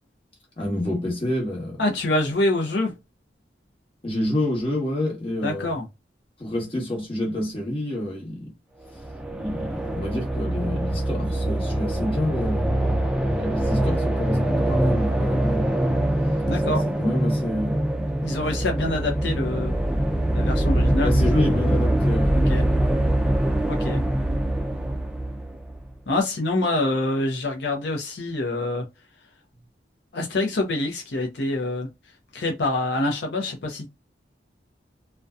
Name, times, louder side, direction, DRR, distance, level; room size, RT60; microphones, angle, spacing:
voice 1, 0.6-1.8 4.0-5.8 6.4-8.5 9.3-12.7 13.3-15.8 16.6-17.8 21.0-22.4, left 1 dB, 30° left, 1.1 m, -28 dB
voice 2, 1.8-2.9 5.4-5.8 16.5-16.8 18.2-19.7 20.3-21.6 22.5-22.7 23.7-24.0 26.1-28.8 30.1-31.9 32.3-33.9, left 2 dB, 75° left, 0.6 m, -26 dB
sound 1, 8.9-25.9, right 1 dB, 5° right, 0.3 m, -23 dB
2.6 x 2.1 x 2.2 m
head